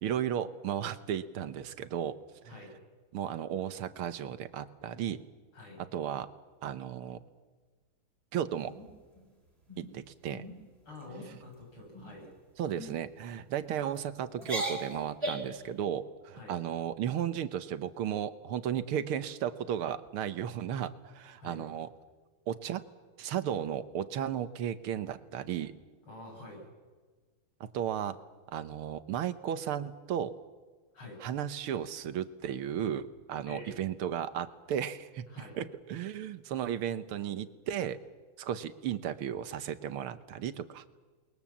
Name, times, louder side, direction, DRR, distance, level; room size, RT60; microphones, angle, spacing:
voice 1, 0.0-2.2 3.1-5.2 5.8-6.3 6.6-7.2 8.3-8.7 9.8-10.4 12.6-21.9 22.5-22.8 23.2-25.7 27.6-28.2 28.5-30.4 31.2-38.0 38.4-40.8, right 9 dB, 90° right, 12 dB, 1.9 m, -34 dB
sound 1, 8.6-9.2 9.7-9.9 10.3-10.6 10.9-11.3 11.9-12.3 12.8-12.9 13.7-14.0 14.4-15.6, right 1 dB, 30° right, 3.9 m, -38 dB
voice 2, 10.9-12.3 16.3-16.6 21.4-21.6 26.0-26.7 30.9-31.2 33.5-33.8 35.3-35.6, left 2 dB, 80° left, 0 dB, 8.1 m, -47 dB
28.5 x 21.5 x 7.3 m, 1.4 s
omnidirectional pair, 2.3 m